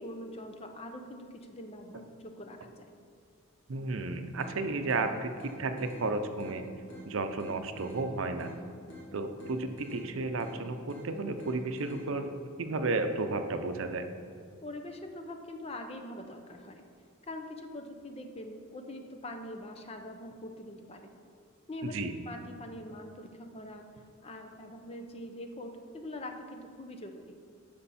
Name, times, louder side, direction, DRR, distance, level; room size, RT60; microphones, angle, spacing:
voice 1, 0.0-2.9 14.6-16.8 17.2-21.1 21.7-21.9 22.3-23.8 24.2-27.3, left 1 dB, 30° left, 4 dB, 0.7 m, -43 dB
voice 2, 3.7-5.3 5.6-6.7 7.0-8.5 9.1-12.3 12.6-14.1 21.8-22.1, right 3 dB, 70° right, 7 dB, 0.6 m, -33 dB
sound 1, 4.4-12.4, equal, 60° left, 2.1 m, -49 dB
12.5 x 5.3 x 4.2 m, 2.3 s
head